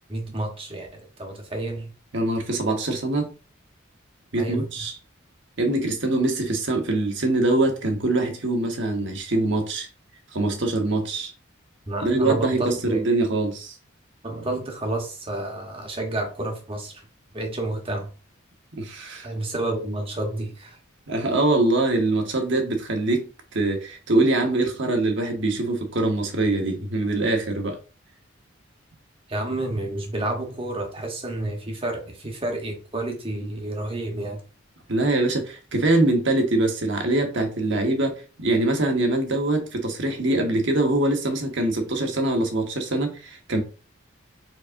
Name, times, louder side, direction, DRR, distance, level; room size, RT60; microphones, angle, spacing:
voice 1, 0.1-1.9 4.4-4.7 11.9-13.1 14.2-17.0 17.3-18.1 19.2-20.8 29.3-34.4, right 2 dB, 25° right, 1.2 m, -30 dB
voice 2, 2.1-3.3 4.3-4.9 5.6-9.9 10.3-11.3 12.0-13.8 18.7-19.3 21.1-27.8 34.9-43.6, right 2 dB, 60° right, 1.2 m, -23 dB
4.7 x 4.1 x 2.6 m
head